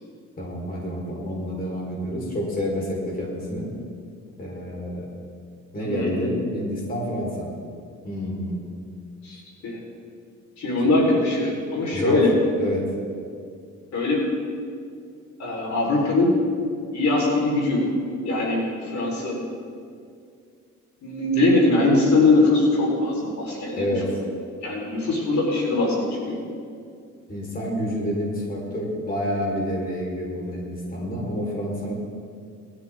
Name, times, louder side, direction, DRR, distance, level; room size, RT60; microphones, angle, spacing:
voice 1, 0.4-3.7 4.4-5.1 5.7-7.5 8.0-8.6 11.9-12.3 12.6-12.8 23.8-24.1 27.3-31.9, equal, 30° left, -2 dB, 4.5 m, -28 dB
voice 2, 5.8-6.1 9.2-9.8 10.6-12.3 13.9-14.2 15.4-16.3 16.9-17.8 18.2-19.4 21.0-23.9 24.6-26.4, left 2 dB, 65° left, -3 dB, 4.4 m, -21 dB
21.0 x 13.5 x 3.8 m, 2.3 s
cardioid pair, 90°, 30 cm